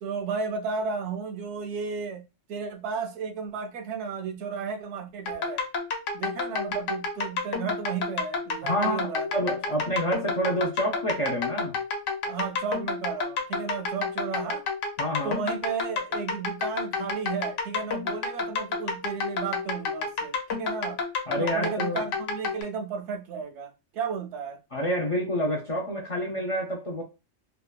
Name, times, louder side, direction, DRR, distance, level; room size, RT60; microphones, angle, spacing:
voice 1, 0.0-5.6 6.1-9.3 12.2-14.6 15.2-21.0 21.4-24.6, right 5 dB, 80° right, 0.9 m, -33 dB
sound 1, 5.3-22.6, left 4 dB, 85° left, 1.0 m, -30 dB
voice 2, 8.6-11.8 15.0-15.4 21.3-22.0 24.7-27.0, equal, 60° left, 0.3 m, -28 dB
2.8 x 2.3 x 2.2 m
omnidirectional pair, 1.2 m